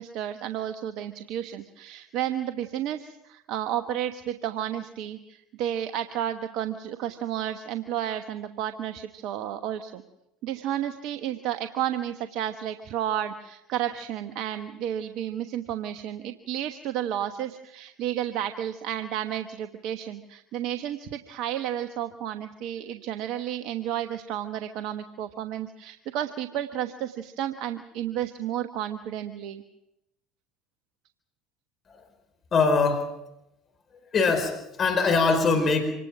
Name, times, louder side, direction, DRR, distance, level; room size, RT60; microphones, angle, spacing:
voice 1, 0.0-10.0 10.4-29.6, right 11 dB, 60° right, 8 dB, 1.2 m, -32 dB
voice 2, 32.5-33.1 34.1-35.8, left 4 dB, 40° left, 6 dB, 4.6 m, -22 dB
26.5 x 19.5 x 6.1 m, 0.88 s
hypercardioid pair, 70°, 0 cm